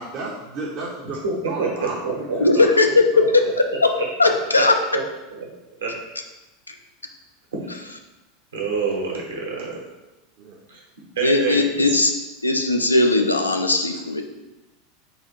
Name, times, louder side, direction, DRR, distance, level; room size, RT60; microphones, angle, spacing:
voice 1, 0.0-1.2 1.5-3.2 10.4-10.6, right 3 dB, 40° right, -3 dB, 0.6 m, -33 dB
voice 2, 1.2-2.4 3.2-3.3 5.3-5.4 5.8-5.9 7.6-7.9 8.5-9.8 10.7-10.8 11.2-12.0, right 4 dB, 70° right, -2 dB, 1.0 m, -27 dB
voice 3, 2.3-3.4 3.8-3.9 4.2-4.8 6.7-6.8 11.2-12.1 12.4-14.2, left 3 dB, 85° left, 4 dB, 0.3 m, -18 dB
3.9 x 2.4 x 4.2 m, 1.0 s
figure-of-eight pair, 80°, 0 cm